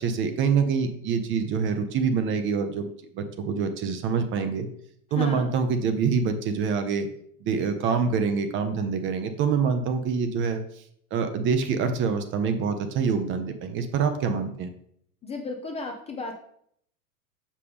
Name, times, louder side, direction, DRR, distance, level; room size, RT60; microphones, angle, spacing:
voice 1, 0.0-2.9 3.1-4.7 5.1-7.1 7.4-10.8 11.1-14.7, right 5 dB, 25° right, 8 dB, 0.6 m, -26 dB
voice 2, 5.2-5.5 15.2-16.4, left 3 dB, 15° left, 2 dB, 0.5 m, -33 dB
6.6 x 5.3 x 3.4 m, 0.67 s
hypercardioid pair, 100°, 46 cm